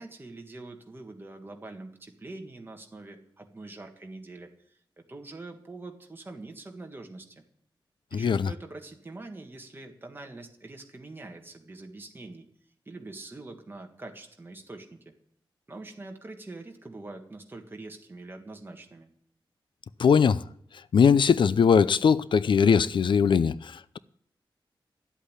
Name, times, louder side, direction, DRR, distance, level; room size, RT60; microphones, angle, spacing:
voice 1, 0.0-7.4 8.1-12.5 12.9-15.1 15.7-19.1, right 2 dB, 25° right, 1.7 m, -44 dB
voice 2, 8.1-8.5 20.0-20.4 20.9-24.0, left 6 dB, 65° left, 0.5 m, -21 dB
12.0 x 8.2 x 9.9 m
wide cardioid pair, 140°, 9 cm